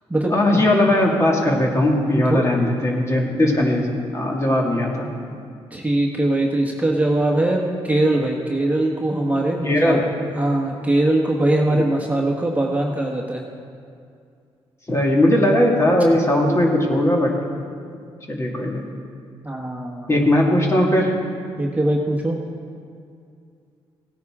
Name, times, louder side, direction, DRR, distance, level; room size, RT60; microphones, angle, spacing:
voice 1, 0.3-5.1 9.6-10.0 11.7-11.8 14.9-17.4 17.9-18.0 18.3-18.9 20.1-21.1, left 1 dB, 25° left, -1 dB, 2.0 m, -19 dB
voice 2, 5.7-10.0 10.3-13.4 19.4-20.1 21.6-22.4, right 1 dB, 15° right, -1 dB, 1.4 m, -21 dB
16.5 x 9.3 x 3.6 m, 2.3 s
cardioid pair, 75°, 11 cm